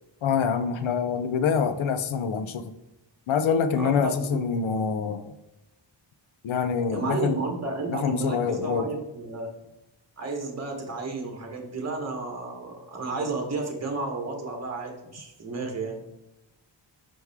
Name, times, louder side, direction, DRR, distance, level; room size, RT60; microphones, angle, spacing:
voice 1, 0.2-2.6 3.3-5.3 6.4-7.4 7.9-8.9, left 6 dB, 85° left, 11 dB, 0.6 m, -25 dB
voice 2, 3.8-4.4 6.9-9.5 10.2-16.0, right 3 dB, 35° right, 2 dB, 1.2 m, -32 dB
6.1 x 4.7 x 3.4 m, 0.92 s
wide cardioid pair, 135°, 46 cm